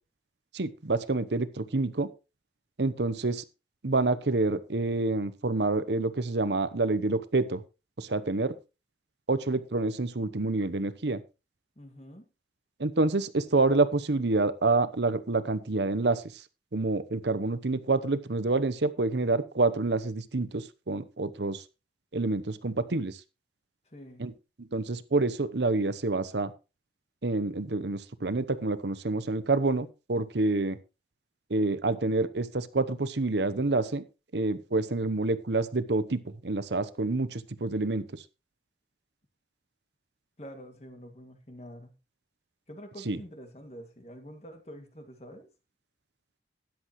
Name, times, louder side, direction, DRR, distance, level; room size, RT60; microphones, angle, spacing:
voice 1, 0.5-2.1 2.8-3.4 3.8-7.6 8.0-8.5 9.3-11.2 12.8-16.2 16.7-21.6 22.1-23.2 24.2-24.3 24.7-26.5 27.2-30.8 31.5-34.0 34.3-38.0 43.1-43.2, right 3 dB, 75° right, 0.9 m, -27 dB
voice 2, 11.8-12.3 23.9-24.3 40.4-41.9 42.7-45.5, equal, 35° left, 2.2 m, -46 dB
13.5 x 10.5 x 3.1 m
head